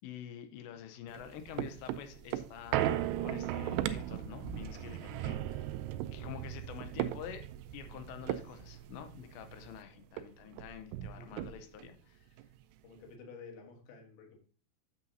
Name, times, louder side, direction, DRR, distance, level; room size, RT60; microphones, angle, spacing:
voice 1, 0.0-5.7 6.1-7.5 7.7-12.3, left 10 dB, 85° left, 8 dB, 3.0 m, -47 dB
sound 1, 1.1-9.8 10.2-10.3 10.5-11.9 12.4-12.5, right 12 dB, 85° right, 2.5 m, -37 dB
voice 2, 11.2-11.9 12.8-14.4, left 4 dB, 65° left, 3 dB, 3.0 m, -52 dB
8.7 x 6.9 x 2.7 m, 0.40 s
omnidirectional pair, 5.0 m